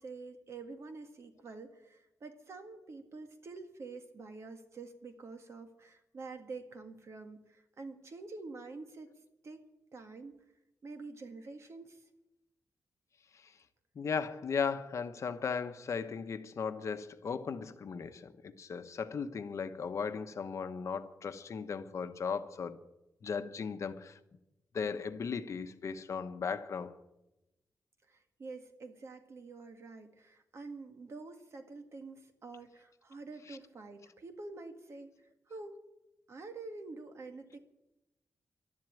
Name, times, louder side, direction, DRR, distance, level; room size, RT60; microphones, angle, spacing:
voice 1, 0.0-9.1 9.4-9.6 9.9-10.4 10.8-12.0 28.1-35.1 35.5-35.8 36.3-37.6, right 3 dB, 50° right, 1.8 m, -47 dB
voice 2, 13.9-22.8 23.2-24.2 24.7-27.0 33.5-33.6, left 6 dB, 60° left, 1.0 m, -37 dB
12.5 x 11.0 x 9.0 m
wide cardioid pair, 155°, 6 cm